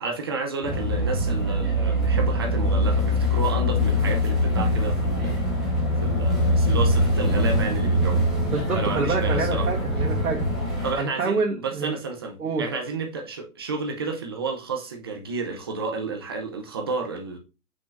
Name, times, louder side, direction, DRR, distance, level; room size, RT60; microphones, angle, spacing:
voice 1, 0.0-5.7 6.0-8.3 8.7-9.7 10.8-17.4, right 4 dB, 15° right, 0.6 m, -31 dB
sound 1, 0.6-10.9, equal, ahead, 1.3 m, -23 dB
voice 2, 8.5-10.4 11.0-11.9 12.4-12.6, right 4 dB, 85° right, 2.1 m, -27 dB
6.6 x 6.0 x 2.5 m
hypercardioid pair, 165°, 44 cm